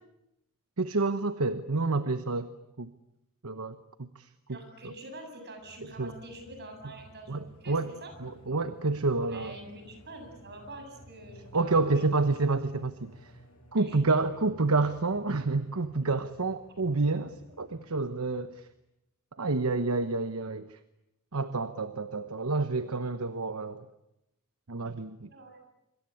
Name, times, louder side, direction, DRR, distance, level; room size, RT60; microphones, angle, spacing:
voice 1, 0.8-2.5 2.8-2.9 3.4-4.6 4.8-4.9 6.0-6.1 7.3-7.9 8.2-9.5 11.5-13.3 13.7-18.6 19.4-20.8 21.3-23.9 24.7-25.3, right 3 dB, 70° right, 11 dB, 1.1 m, -29 dB
voice 2, 4.5-8.1 9.2-12.1 13.8-14.0 25.3-25.6, right 1 dB, 50° right, 6 dB, 7.6 m, -46 dB
sound 1, 5.6-18.7, equal, 80° left, 6.0 m, -55 dB
26.0 x 25.5 x 8.6 m, 0.86 s
head